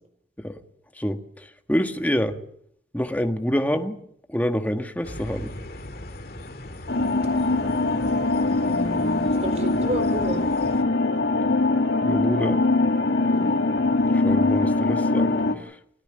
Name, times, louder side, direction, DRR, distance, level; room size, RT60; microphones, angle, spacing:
voice 1, 1.0-2.4 2.9-4.0 4.3-5.5 12.0-12.6 14.1-15.3 15.6-15.7, equal, 10° left, 7 dB, 1.4 m, -26 dB
sound 1, 5.0-10.8, left 1 dB, 60° left, 2.2 m, -38 dB
sound 2, 6.9-15.5, left 2 dB, 75° left, 2.1 m, -22 dB
voice 2, 8.4-10.4 13.3-13.6, right 1 dB, 40° right, 8 dB, 5.1 m, -32 dB
29.0 x 13.0 x 8.7 m, 0.70 s
head